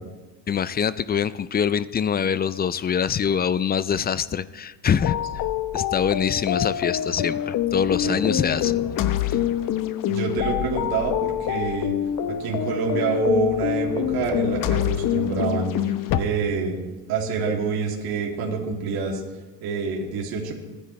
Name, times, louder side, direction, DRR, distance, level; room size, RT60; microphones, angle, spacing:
voice 1, 0.5-5.2 5.7-8.8 9.3-9.4, left 7 dB, 25° left, 16 dB, 0.4 m, -24 dB
sound 1, 5.0-16.2, left 11 dB, 50° left, 1.0 m, -26 dB
voice 2, 10.0-11.9 12.4-15.7 16.2-19.2 19.6-20.5, right 4 dB, 60° right, 0 dB, 2.7 m, -26 dB
29.0 x 10.0 x 3.2 m, 1.2 s
supercardioid pair, 100°, 41 cm